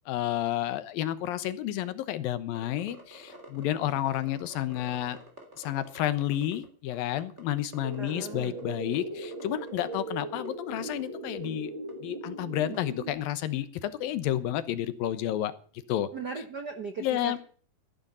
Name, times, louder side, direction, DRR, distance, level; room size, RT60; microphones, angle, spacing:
voice 1, 0.1-5.2 5.6-11.7 12.0-15.5 15.9-16.1 17.0-17.4, left 12 dB, 80° left, 13 dB, 2.8 m, -31 dB
sound 1, 2.5-6.7 6.9-8.1 8.4-9.0 9.2-10.0 10.4-10.5 10.8-11.0 11.4-11.5 11.9-12.0 12.7-12.8, right 1 dB, 20° right, 3.3 m, -49 dB
sound 2, 7.8-13.1, right 2 dB, 35° right, 3.2 m, -39 dB
voice 2, 8.0-8.5 12.6-12.8 16.1-17.4, right 5 dB, 60° right, 6 dB, 1.0 m, -38 dB
15.5 x 12.0 x 5.6 m, 0.44 s
omnidirectional pair, 4.1 m